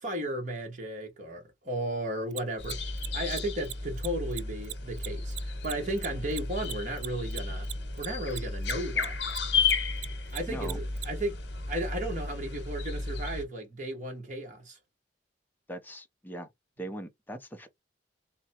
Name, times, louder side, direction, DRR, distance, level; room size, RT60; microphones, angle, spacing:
voice 1, 0.0-2.8 3.1-7.7 8.0-9.1 10.3-11.4 11.7-14.8, right 1 dB, 40° right, 1.3 m, -34 dB
Mechanisms, 2.3-9.1 9.3-11.1, right 15 dB, 65° right, 0.3 m, -38 dB
sound 1, 2.6-13.4, left 4 dB, 65° left, 1.0 m, -33 dB
voice 2, 10.5-10.8 15.7-16.5 16.8-17.7, right 1 dB, 10° left, 0.6 m, -40 dB
3.8 x 2.2 x 4.2 m
head